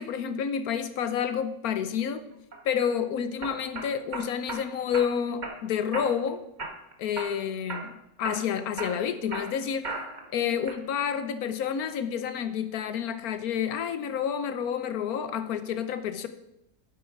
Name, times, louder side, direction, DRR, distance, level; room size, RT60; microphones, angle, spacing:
voice 1, 0.0-2.3 2.6-6.4 7.0-7.9 8.2-9.9 10.3-16.3, left 8 dB, 65° left, 11 dB, 1.1 m, -29 dB
sound 1, 2.5-2.9 3.4-4.6 4.9-5.6 5.9-6.3 6.6-7.4 7.7-7.9 8.2-10.3 10.7-11.2, right 3 dB, 30° right, 1.2 m, -36 dB
9.2 x 8.1 x 4.6 m, 0.81 s
omnidirectional pair, 1.9 m